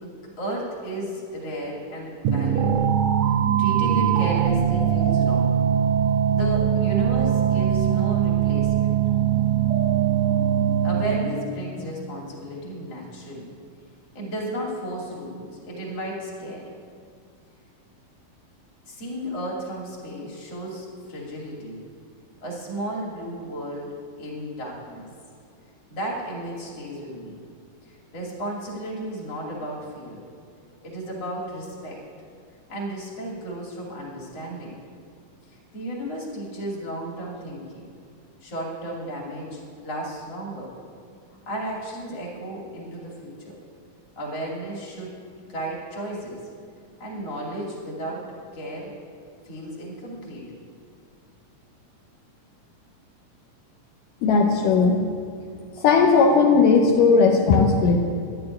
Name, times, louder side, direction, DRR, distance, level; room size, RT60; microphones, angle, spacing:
voice 1, 0.0-2.9 3.6-5.5 6.3-9.0 10.8-13.5 14.1-16.6 18.8-21.8 22.4-23.9 24.2-25.1 25.9-27.4 27.8-30.2 30.8-32.0 32.7-34.7 35.5-37.8 38.4-40.7 41.5-43.6 44.2-45.1 45.5-46.4 47.0-48.2 48.5-48.9 49.4-50.5, right 1 dB, 45° left, -3 dB, 3.6 m, -33 dB
sound 1, 2.2-11.5, right 9 dB, 90° right, 1.5 m, -21 dB
voice 2, 54.2-55.0 55.8-58.0, left 4 dB, 80° left, 0 dB, 2.5 m, -17 dB
11.5 x 6.9 x 9.6 m, 2.3 s
omnidirectional pair, 3.9 m